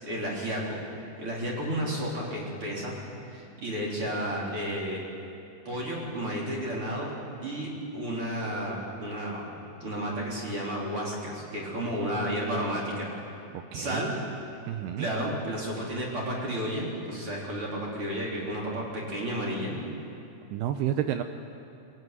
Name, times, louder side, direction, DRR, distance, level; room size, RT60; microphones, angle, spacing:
voice 1, 0.0-0.8 1.2-2.9 3.3-5.0 5.6-7.1 7.4-9.4 9.8-13.1 13.7-14.1 15.0-19.7, equal, 30° right, -3 dB, 4.1 m, -32 dB
voice 2, 13.7-14.0 14.7-15.1 20.5-21.2, right 11 dB, 80° right, 7 dB, 2.3 m, -30 dB
23.5 x 16.0 x 9.5 m, 2.6 s
omnidirectional pair, 5.4 m